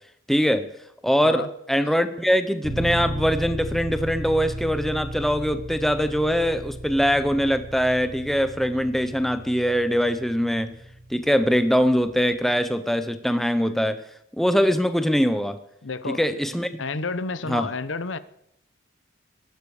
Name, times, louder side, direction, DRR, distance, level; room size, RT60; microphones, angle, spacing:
voice 1, 0.3-0.7 1.0-10.8 11.1-14.0 14.4-15.6 16.1-16.7 17.5-17.7, equal, ahead, 0.8 m, -22 dB
sound 1, 2.6-12.4, equal, 65° right, 3.6 m, -36 dB
voice 2, 15.8-16.4 16.8-18.2, left 3 dB, 75° left, 0.9 m, -30 dB
21.0 x 12.0 x 4.9 m
head